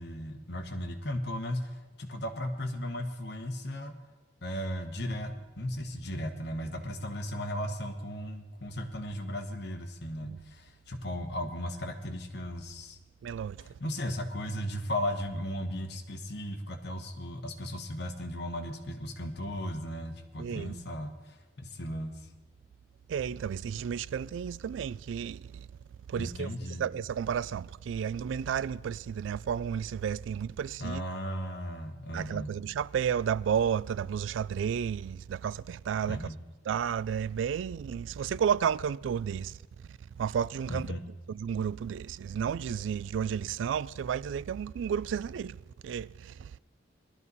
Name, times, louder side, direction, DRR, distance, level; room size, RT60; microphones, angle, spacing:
voice 1, 0.0-4.0 4.4-13.0 13.8-22.2 26.2-26.8 30.8-32.5 36.0-36.4 40.7-41.0, equal, 60° left, 1.2 m, -36 dB
voice 2, 13.2-13.7 20.4-20.8 23.1-25.7 26.1-26.5 26.8-31.0 32.1-36.3 36.7-39.6 39.9-41.0 41.3-46.5, right 8 dB, 90° right, 0.3 m, -32 dB
18.0 x 12.5 x 4.1 m
head